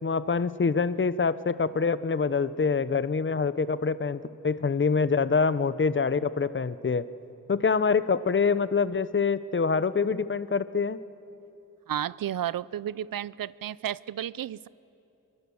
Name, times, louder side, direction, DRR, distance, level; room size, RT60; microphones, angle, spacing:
voice 1, 0.0-7.0 7.5-11.0, left 5 dB, 35° left, 15 dB, 0.7 m, -25 dB
voice 2, 11.9-14.7, right 11 dB, 85° right, 20 dB, 0.5 m, -32 dB
25.0 x 23.5 x 7.0 m, 3.0 s
wide cardioid pair, 100°, 33 cm